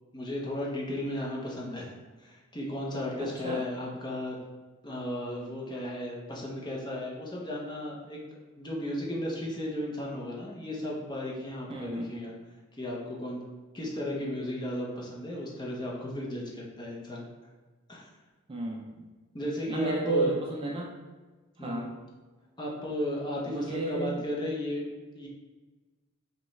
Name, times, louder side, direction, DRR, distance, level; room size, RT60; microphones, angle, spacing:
voice 1, 0.1-4.4 4.8-8.2 8.6-12.3 12.8-13.4 13.7-17.3 17.9-18.0 19.3-20.3 21.6-21.9 22.6-24.8 25.1-25.3, left 1 dB, 20° left, -3 dB, 0.7 m, -35 dB
voice 2, 3.2-3.6 11.7-12.1 18.5-19.0 19.7-21.0 21.6-21.9 23.5-24.2, right 2 dB, 25° right, -1 dB, 0.3 m, -32 dB
5.1 x 2.3 x 3.1 m, 1.3 s
head